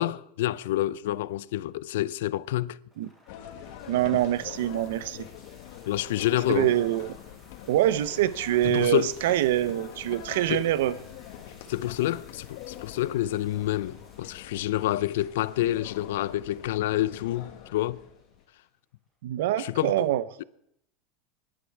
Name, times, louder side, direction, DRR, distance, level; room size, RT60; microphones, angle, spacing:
voice 1, 0.0-2.8 5.9-6.7 8.6-9.1 10.5-10.6 11.7-18.0 19.6-20.1 20.4-20.5, left 14 dB, 85° left, 0.5 m, -28 dB
sound 1, 2.9-18.9, equal, 10° right, 6.7 m, -58 dB
sound 2, 3.3-18.4, left 10 dB, 55° left, 1.7 m, -45 dB
voice 2, 3.9-5.3 6.5-7.1 7.7-10.9 19.2-20.2, right 13 dB, 80° right, 0.6 m, -25 dB
24.0 x 11.5 x 4.7 m
supercardioid pair, 180°, 0 cm